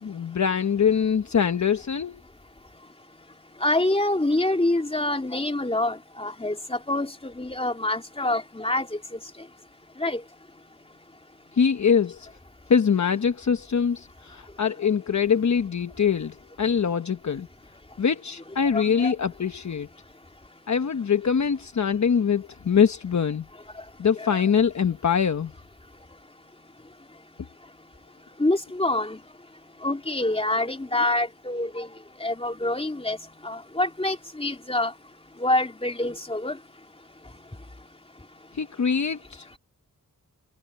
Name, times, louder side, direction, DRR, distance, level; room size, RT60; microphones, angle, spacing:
voice 1, 0.0-2.2 11.6-12.3 12.7-17.5 18.0-19.9 20.7-23.5 24.0-25.5 38.5-39.5, left 7 dB, 55° left, 1.1 m, -23 dB
voice 2, 3.6-8.9 10.0-10.2 18.7-19.2 24.2-24.4 28.4-29.2 29.8-31.9 32.2-33.2 33.4-34.9 35.4-36.6, left 2 dB, 15° left, 2.9 m, -26 dB
wide cardioid pair, 75°, 33 cm